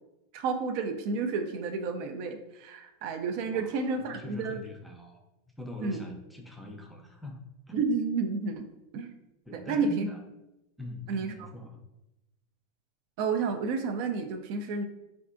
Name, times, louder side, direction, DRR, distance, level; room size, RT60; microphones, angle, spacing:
voice 1, 0.3-4.6 5.8-6.0 7.7-8.7 8.9-9.1 9.5-10.1 11.1-11.5 13.2-14.8, right 4 dB, 60° right, 6 dB, 0.4 m, -31 dB
voice 2, 3.5-5.2 5.6-7.4 7.7-7.8 9.5-10.2 10.8-11.8, equal, 5° left, 2 dB, 0.5 m, -42 dB
3.5 x 2.4 x 2.5 m, 0.90 s
hypercardioid pair, 110°, 0 cm